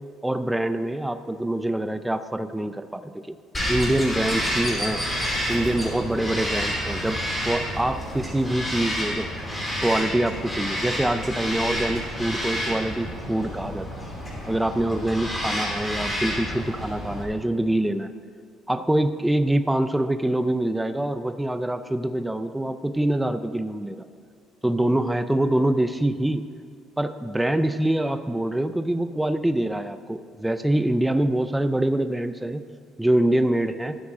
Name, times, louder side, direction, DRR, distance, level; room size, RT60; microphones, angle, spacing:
voice 1, 0.2-3.4 3.7-5.0 5.5-9.3 9.8-14.1 14.5-18.1 18.7-24.0 24.6-26.4 27.0-32.6 33.0-34.0, right 1 dB, 5° right, 10 dB, 0.4 m, -25 dB
Bird vocalization bird call bird song, 3.5-17.2, equal, 15° left, 3.2 m, -29 dB
12.5 x 8.7 x 4.9 m, 2.3 s
cardioid pair, 120°, 0 cm